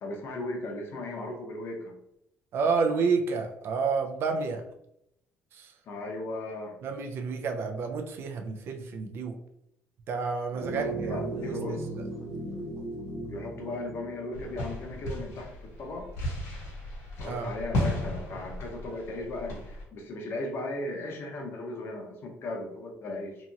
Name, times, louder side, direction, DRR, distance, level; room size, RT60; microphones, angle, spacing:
voice 1, 0.0-2.0 5.9-6.7 10.5-11.9 13.3-16.1 17.2-23.4, left 2 dB, 55° left, 1 dB, 0.8 m, -37 dB
voice 2, 2.5-4.6 5.5-5.7 6.8-9.4 10.1-11.8 17.2-17.5, right 5 dB, 55° right, 5 dB, 0.4 m, -30 dB
sound 1, 10.6-15.2, right 2 dB, 80° right, 0.9 m, -37 dB
sound 2, 14.3-19.8, left 1 dB, 75° left, 1.3 m, -35 dB
2.8 x 2.7 x 2.4 m, 0.79 s
cardioid pair, 110°, 5 cm